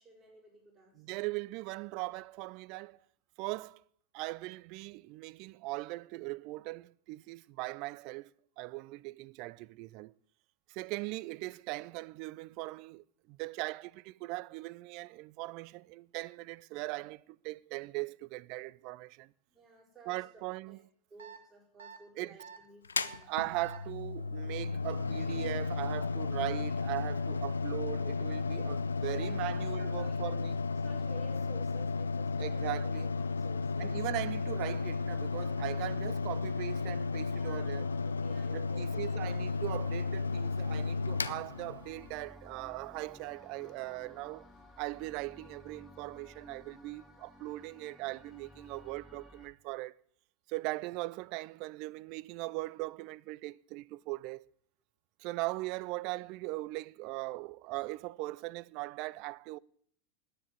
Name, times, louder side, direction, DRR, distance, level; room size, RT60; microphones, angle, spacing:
voice 1, 0.0-1.0 19.5-20.8 21.1-23.3 29.1-30.2 30.7-34.0 37.3-39.3, right 5 dB, 25° right, 7.1 m, -55 dB
voice 2, 1.0-3.0 3.4-3.8 4.1-10.1 10.7-19.3 20.1-20.8 22.2-22.4 23.2-30.6 32.4-33.1 33.8-37.8 38.5-44.5 44.8-50.0 50.5-54.4 55.2-59.6, right 21 dB, 50° right, 0.5 m, -39 dB
sound 1, 21.2-21.4 21.8-22.0 22.4-22.6 23.0-23.2 23.6-23.8, right 6 dB, 75° right, 1.7 m, -48 dB
Mechanical fan, 22.8-42.2, left 4 dB, 85° left, 0.6 m, -34 dB
sound 2, 37.7-49.5, left 1 dB, 10° left, 3.3 m, -56 dB
9.9 x 9.8 x 9.8 m
figure-of-eight pair, 90°, 0 cm